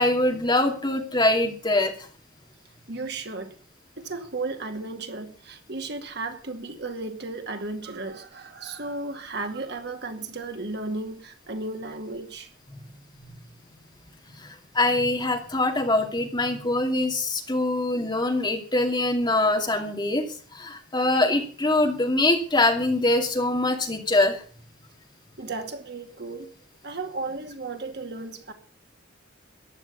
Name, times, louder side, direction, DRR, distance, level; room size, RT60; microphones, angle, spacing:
voice 1, 0.0-2.1 14.3-20.3 20.5-24.4, left 2 dB, 25° left, 2.4 m, -23 dB
voice 2, 2.9-3.6 4.0-12.5 25.4-26.5 26.8-28.5, right 3 dB, 60° right, 2.2 m, -34 dB
14.5 x 10.5 x 7.1 m
head